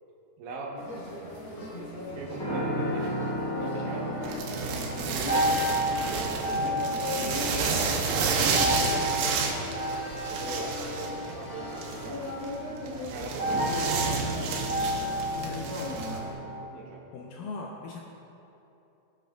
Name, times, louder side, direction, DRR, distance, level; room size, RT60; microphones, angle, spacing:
voice 1, 0.4-0.8 2.1-3.3 3.6-4.6 5.0-5.3 5.6-5.8 6.1-9.1 10.3-12.3 13.1-14.2 16.7-17.0, right 2 dB, 70° right, -3 dB, 2.6 m, -40 dB
sound 1, 0.8-16.3, left 1 dB, 60° left, 1.3 m, -39 dB
sound 2, 2.4-16.6, equal, 30° left, 1.4 m, -32 dB
sound 3, 4.2-16.2, right 5 dB, 85° right, 2.8 m, -31 dB
voice 2, 15.3-16.3 17.1-18.0, left 4 dB, 90° left, -1 dB, 1.9 m, -40 dB
16.5 x 7.0 x 2.3 m, 2.9 s
omnidirectional pair, 4.5 m